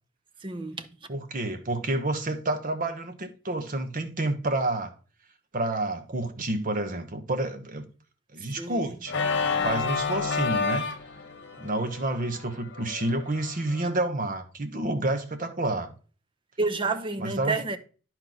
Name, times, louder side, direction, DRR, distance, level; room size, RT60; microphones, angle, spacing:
voice 1, 0.4-0.9 8.6-8.8 16.6-17.8, right 3 dB, 25° right, 0.6 m, -29 dB
voice 2, 1.1-4.9 5.5-7.8 8.3-9.1 9.6-10.9 11.6-15.9 17.2-17.6, right 2 dB, 45° right, 0.9 m, -29 dB
Organ, 9.1-13.9, left 5 dB, 60° left, 1.0 m, -30 dB
10.5 x 4.5 x 3.9 m
head